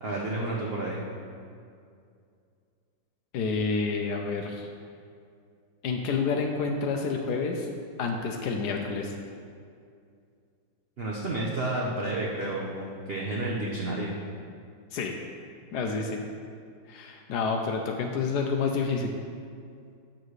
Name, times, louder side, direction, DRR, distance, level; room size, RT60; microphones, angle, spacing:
voice 1, 0.0-1.0 11.0-14.2, right 2 dB, 75° right, -4 dB, 0.5 m, -31 dB
voice 2, 3.3-4.7 5.8-7.7 8.0-9.1 14.9-15.1 15.7-16.2 16.9-19.1, left 4 dB, 70° left, 3 dB, 1.0 m, -29 dB
7.4 x 6.5 x 3.2 m, 2.3 s
omnidirectional pair, 2.1 m